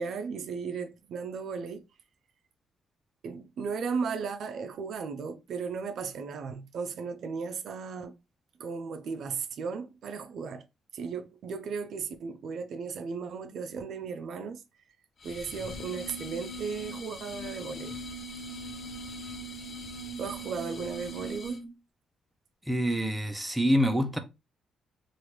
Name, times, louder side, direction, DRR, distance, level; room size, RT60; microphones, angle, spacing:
voice 1, 0.0-1.8 3.2-8.2 8.6-10.7 10.9-14.6 15.2-18.0 20.2-21.8, right 5 dB, 65° right, 0.4 m, -36 dB
sound 1, 15.2-21.7, right 1 dB, 50° left, 0.6 m, -40 dB
voice 2, 22.7-24.2, equal, 5° right, 0.6 m, -26 dB
3.0 x 2.5 x 3.0 m
cardioid pair, 90°, 0 cm